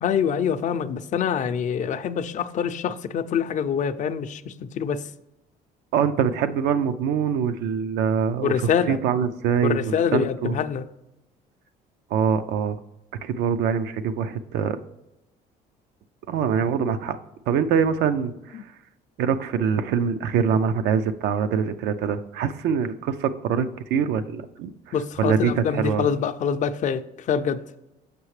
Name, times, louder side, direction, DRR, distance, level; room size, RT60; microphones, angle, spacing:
voice 1, 0.0-5.0 8.4-9.0 9.6-10.8 24.9-27.6, left 7 dB, 45° left, 0.5 m, -25 dB
voice 2, 5.9-10.6 12.1-12.8 13.2-14.8 16.3-17.2 17.5-18.7 19.2-26.1, right 7 dB, 80° right, 0.4 m, -24 dB
6.7 x 5.6 x 3.2 m
cardioid pair, 110°, 17 cm